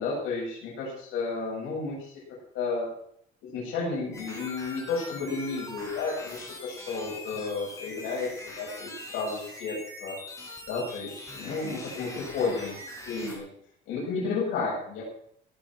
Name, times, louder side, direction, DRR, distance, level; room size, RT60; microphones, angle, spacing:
voice 1, 0.0-2.2 2.5-2.9 3.4-8.3 8.6-10.2 10.7-12.8 13.1-13.5 13.9-15.0, left 4 dB, 85° left, -4 dB, 7.4 m, -32 dB
sound 1, 4.1-13.4, left 1 dB, 15° left, 4.6 m, -42 dB
17.5 x 8.8 x 6.1 m, 0.66 s
cardioid pair, 160°, 20 cm